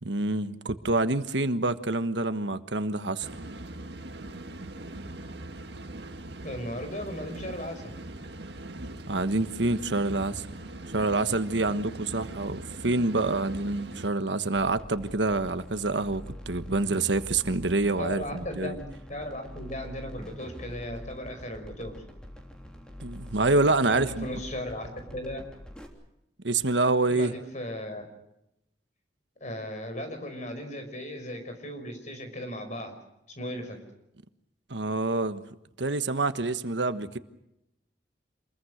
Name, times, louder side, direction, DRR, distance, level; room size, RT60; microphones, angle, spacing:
voice 1, 0.0-3.3 9.1-10.5 10.9-18.8 23.0-24.3 26.4-27.3 34.7-35.4 35.8-37.2, right 2 dB, 90° right, 11 dB, 1.3 m, -27 dB
sound 1, 3.2-14.1, right 1 dB, 70° right, 1.7 m, -41 dB
voice 2, 6.4-7.9 18.0-21.9 23.8-25.4 27.1-28.0 29.4-33.0 33.4-33.8, left 1 dB, 45° left, 6 dB, 5.5 m, -36 dB
sound 2, 14.5-25.9, equal, 5° left, 3.2 m, -45 dB
27.5 x 21.5 x 6.4 m, 0.85 s
head